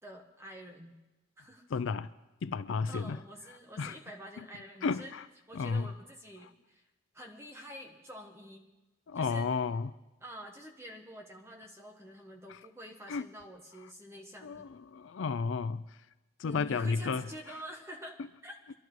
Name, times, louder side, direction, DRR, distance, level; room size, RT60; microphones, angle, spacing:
voice 1, 0.0-1.0 1.4-1.7 2.9-5.1 5.5-6.8 7.1-8.6 9.1-9.5 10.2-14.7 16.4-18.7, equal, 15° right, 1.3 m, -48 dB
voice 2, 1.7-2.1 2.4-3.2 3.8-4.0 4.8-5.2 5.5-5.9 9.1-9.9 13.1-13.3 14.4-15.8 16.4-17.2, left 5 dB, 65° left, 0.4 m, -32 dB
25.0 x 12.0 x 3.1 m
head